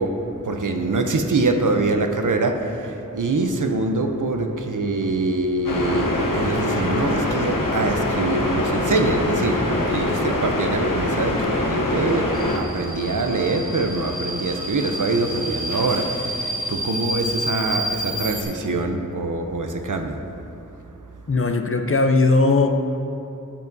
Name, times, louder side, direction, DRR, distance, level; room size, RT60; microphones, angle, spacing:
voice 1, 0.0-20.3 20.9-21.0, right 3 dB, 70° right, 5 dB, 0.6 m, -24 dB
sound 1, 5.6-12.6, left 1 dB, 85° left, 0.9 m, -23 dB
Subway metro underground, 12.3-18.4, right 1 dB, 25° right, 1.2 m, -29 dB
voice 2, 21.3-22.7, left 3 dB, 45° left, 6 dB, 0.5 m, -18 dB
13.0 x 5.6 x 2.6 m, 2.9 s
wide cardioid pair, 45°, 32 cm